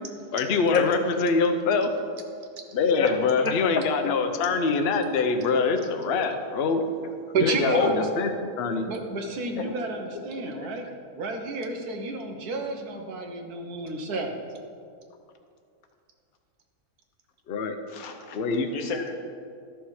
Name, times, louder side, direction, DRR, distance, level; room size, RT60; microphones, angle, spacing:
voice 1, 0.3-1.9 2.7-6.8 7.4-8.3 8.6-8.9 17.5-17.8 18.3-18.7, left 4 dB, 55° left, 6 dB, 0.8 m, -24 dB
voice 2, 3.0-3.5 4.0-4.1 7.4-7.9 9.6-9.7 10.6-10.7 17.9-18.4 18.7-19.2, left 6 dB, 70° left, 5 dB, 1.4 m, -28 dB
voice 3, 7.3-8.1 8.9-10.9 11.2-14.3, right 3 dB, 80° right, 4 dB, 1.5 m, -30 dB
12.5 x 6.3 x 4.8 m, 2.3 s
omnidirectional pair, 1.6 m